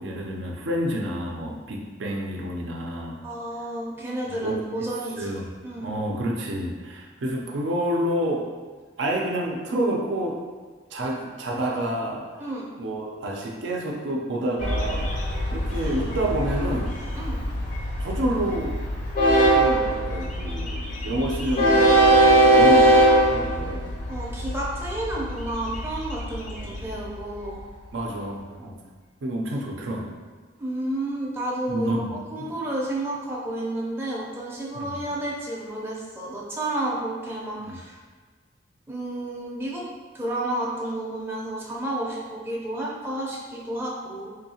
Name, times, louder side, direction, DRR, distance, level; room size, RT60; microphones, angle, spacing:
voice 1, 0.0-3.2 4.4-4.6 5.2-5.4 5.8-8.5 9.0-10.4 10.9-12.2 12.8-15.1 15.5-16.9 18.0-18.8 19.4-23.9 26.5-26.9 27.9-28.8 29.2-30.2 31.7-32.1 32.4-32.5 34.8-34.9 37.6-37.8, right 1 dB, 75° right, -1 dB, 0.5 m, -29 dB
voice 2, 3.2-5.9 12.4-12.7 15.7-16.5 17.1-17.5 24.1-27.6 30.6-38.0 38.9-39.9 40.1-44.3, right 1 dB, 15° right, -5 dB, 0.5 m, -31 dB
Train, 14.6-27.6, right 1 dB, 45° left, 0.5 m, -22 dB
3.7 x 2.7 x 2.8 m, 1.4 s
head